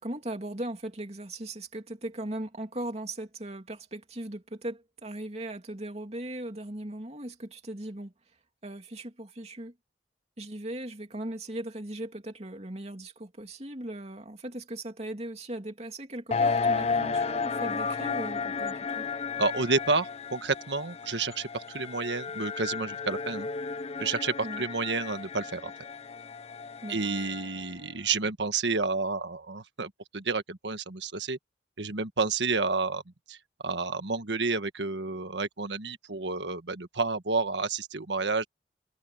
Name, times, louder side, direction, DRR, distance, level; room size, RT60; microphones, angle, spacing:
voice 1, 0.0-8.1 8.6-9.7 10.4-19.1 24.4-24.6 26.8-27.3, right 1 dB, 35° right, 2.8 m, -38 dB
sound 1, 16.3-27.7, left 5 dB, 35° left, 0.6 m, -33 dB
voice 2, 19.4-23.5 24.0-25.7 26.9-31.4 31.8-33.0 33.3-33.4 33.6-38.4, right 4 dB, 90° right, 1.5 m, -30 dB
head